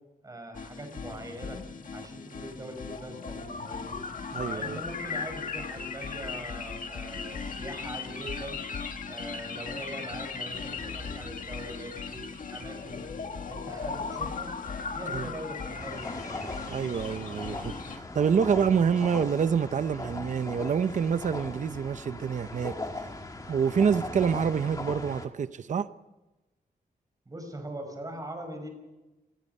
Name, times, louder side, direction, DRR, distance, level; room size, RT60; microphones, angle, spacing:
voice 1, 0.2-1.6 1.9-4.0 4.4-8.6 9.1-13.0 13.5-14.5 14.9-16.5 27.2-28.7, right 1 dB, 20° right, 5.1 m, -42 dB
sound 1, 0.5-18.0, left 5 dB, 55° left, 1.8 m, -37 dB
voice 2, 4.3-4.8 15.1-15.3 16.7-22.7 23.5-25.9, right 7 dB, 50° right, 0.7 m, -27 dB
sound 2, 15.8-25.3, left 2 dB, 20° left, 1.8 m, -39 dB
27.5 x 19.5 x 5.5 m
wide cardioid pair, 175°, 16 cm